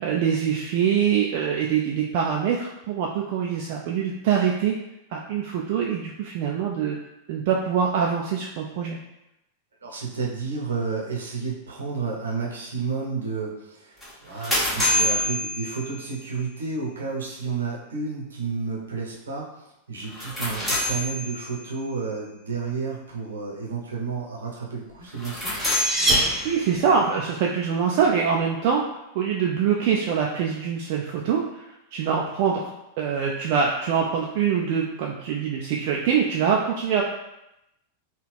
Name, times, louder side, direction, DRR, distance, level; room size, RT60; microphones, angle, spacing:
voice 1, 0.0-4.8 5.1-7.0 7.3-9.0 26.4-28.8 29.1-31.6 31.9-37.0, right 7 dB, 50° right, -1 dB, 0.4 m, -24 dB
voice 2, 9.8-25.6, right 4 dB, 70° right, -2 dB, 0.8 m, -31 dB
sound 1, 14.0-16.3 20.0-21.7 25.1-26.9, left 1 dB, 10° left, 1.4 m, -27 dB
sound 2, 25.0-27.1, right 1 dB, 20° right, 0.9 m, -25 dB
3.6 x 2.3 x 3.4 m, 0.87 s
figure-of-eight pair, 90°, 0 cm